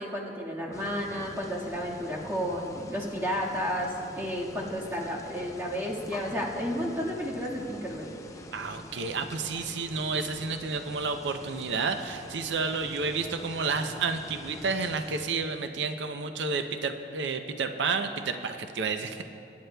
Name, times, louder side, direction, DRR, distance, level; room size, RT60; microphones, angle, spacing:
voice 1, 0.0-8.1, equal, 15° right, -5 dB, 1.6 m, -32 dB
sound 1, 0.7-15.2, left 1 dB, 15° left, 0.5 m, -45 dB
voice 2, 8.5-19.2, right 4 dB, 85° right, 7 dB, 0.5 m, -31 dB
24.5 x 10.5 x 2.2 m, 2.7 s
head